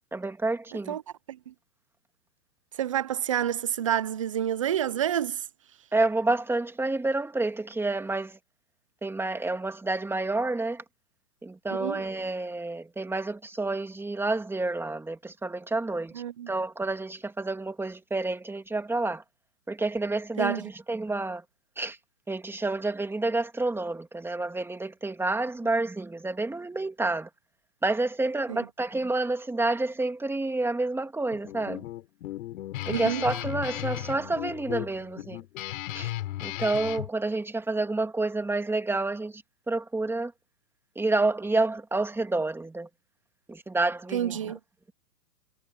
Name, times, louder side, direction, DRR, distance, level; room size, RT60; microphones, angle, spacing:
voice 1, 0.1-1.0 5.9-8.4 9.0-10.8 11.4-16.1 16.5-19.2 19.7-21.4 21.8-22.0 22.3-27.3 27.8-31.8 32.9-35.4 35.9-36.1 36.4-40.3 41.0-42.9 43.5-44.5, right 2 dB, 5° right, 2.2 m, -29 dB
voice 2, 2.8-5.4 11.8-12.0 16.1-16.5 20.4-20.6 28.5-28.6 32.9-33.2 44.1-44.6, right 10 dB, 20° right, 0.4 m, -28 dB
Guitar, 31.3-37.1, left 15 dB, 50° left, 6.0 m, -35 dB
hypercardioid pair, 135°, 50 cm